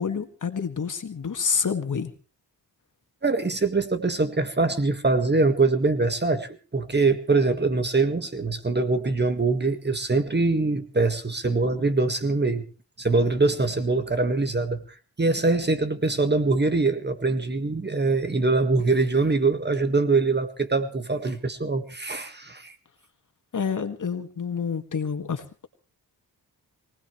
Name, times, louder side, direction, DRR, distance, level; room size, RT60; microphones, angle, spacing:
voice 1, 0.0-2.1 23.5-25.7, left 6 dB, 50° left, 6 dB, 2.0 m, -28 dB
voice 2, 3.2-12.6 13.0-14.8 15.2-22.7, right 3 dB, 25° right, 8 dB, 1.7 m, -23 dB
23.5 x 18.5 x 3.2 m, 0.36 s
cardioid pair, 90°, 39 cm